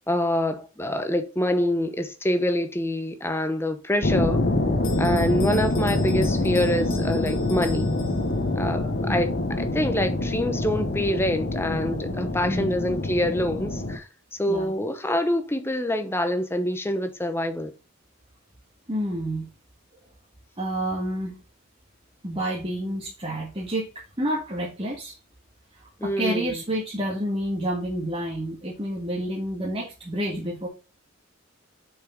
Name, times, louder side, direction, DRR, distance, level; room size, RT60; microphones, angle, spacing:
voice 1, 0.1-4.4 5.0-7.9 8.6-14.1 14.4-17.7 26.0-26.6, left 1 dB, 10° left, 0.9 m, -26 dB
sound 1, 4.0-14.0, left 2 dB, 50° left, 1.1 m, -26 dB
Bell, 4.8-8.6, left 6 dB, 75° left, 1.4 m, -43 dB
voice 2, 12.5-12.9 14.5-14.7 18.9-19.5 20.6-21.3 22.2-23.9 24.2-25.1 26.0-30.7, right 1 dB, 25° right, 1.7 m, -29 dB
6.7 x 5.6 x 5.0 m
head